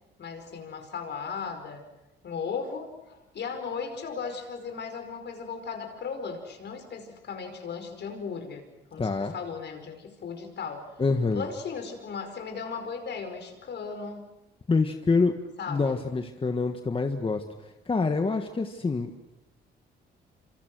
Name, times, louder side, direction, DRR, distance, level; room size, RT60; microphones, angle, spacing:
voice 1, 0.2-1.8 2.2-8.6 8.9-10.9 11.3-14.2 15.6-16.0, left 5 dB, 60° left, 6 dB, 5.2 m, -36 dB
voice 2, 9.0-9.3 11.0-11.5 14.7-15.3 15.7-17.4 17.9-19.3, left 4 dB, 25° left, 6 dB, 1.6 m, -26 dB
27.0 x 26.5 x 6.4 m, 0.97 s
cardioid pair, 90°, 20 cm